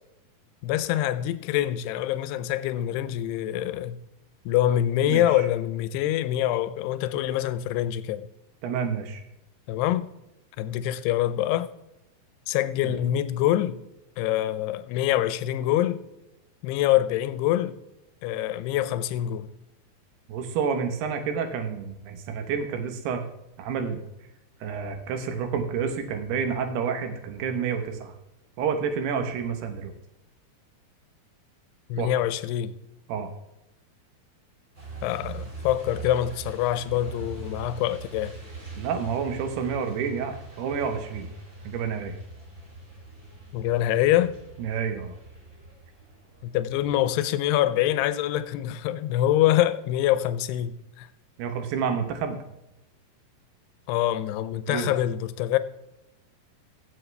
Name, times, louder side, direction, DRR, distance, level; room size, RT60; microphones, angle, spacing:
voice 1, 0.6-4.0 4.5-8.3 9.7-10.1 10.6-11.7 12.5-13.8 14.2-16.0 16.6-17.7 18.2-19.5 31.9-32.7 35.0-38.3 43.5-44.3 46.4-51.1 53.9-55.6, left 12 dB, 80° left, 2.6 m, -25 dB
voice 2, 8.6-9.2 12.8-13.0 20.3-23.2 23.6-24.0 24.6-28.1 28.6-29.9 32.0-32.1 33.1-33.3 38.8-41.3 41.6-42.2 44.6-45.1 51.4-52.4 54.7-55.0, right 6 dB, 75° right, 3.0 m, -29 dB
Truck, 34.7-47.0, right 3 dB, 20° right, 2.9 m, -42 dB
16.0 x 7.4 x 3.3 m
omnidirectional pair, 4.8 m